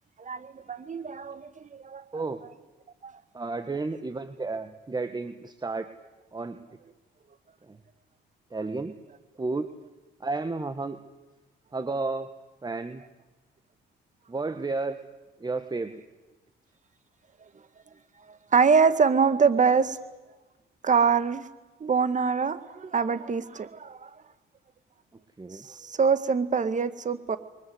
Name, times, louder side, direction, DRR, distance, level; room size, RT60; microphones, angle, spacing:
voice 1, 0.2-2.5 3.0-3.2 3.6-3.7 18.3-20.0 20.8-21.5 21.8-24.2 25.5-27.4, right 5 dB, 40° right, 12 dB, 2.0 m, -25 dB
voice 2, 2.1-2.4 3.3-5.9 6.3-6.7 7.6-7.8 8.5-8.9 9.4-9.7 10.2-11.0 11.7-12.3 12.6-13.0 14.3-15.0 15.4-16.0 25.4-25.7, right 3 dB, 20° right, 10 dB, 1.6 m, -32 dB
29.5 x 23.0 x 8.1 m, 1.1 s
cardioid pair, 90°, 20 cm